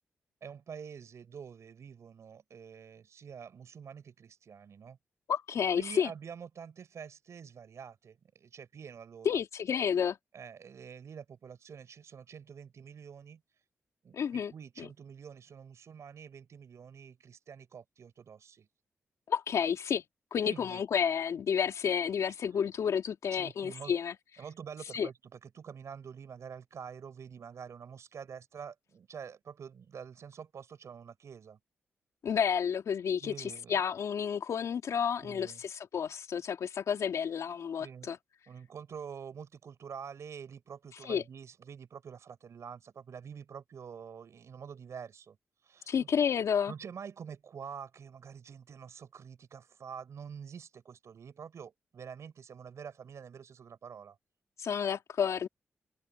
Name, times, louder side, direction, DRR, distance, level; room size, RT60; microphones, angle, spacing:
voice 1, 0.4-5.0 5.7-9.4 10.3-13.4 14.0-18.7 20.4-20.8 23.3-23.9 24.4-31.6 33.2-33.8 35.2-35.6 37.8-38.1 38.5-45.4 45.6-46.1 46.7-54.2, right 7 dB, 70° right, 5.7 m, -47 dB
voice 2, 5.3-6.1 9.2-10.2 14.1-14.5 19.3-20.0 20.3-24.1 24.9-25.1 32.2-38.2 41.0-41.2 45.9-46.7 54.6-55.5, left 7 dB, 75° left, 2.6 m, -30 dB
supercardioid pair, 50°, 5 cm